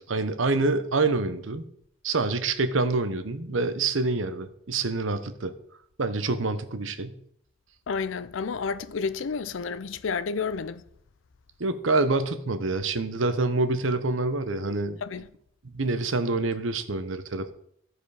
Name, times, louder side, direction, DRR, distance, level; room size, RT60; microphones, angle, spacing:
voice 1, 0.1-1.6 2.0-5.5 6.0-7.2 11.6-15.3 15.7-17.5, right 3 dB, 75° right, 0.8 m, -26 dB
voice 2, 7.9-10.8 15.0-15.3, left 5 dB, 75° left, 0.5 m, -30 dB
14.5 x 4.9 x 4.9 m
head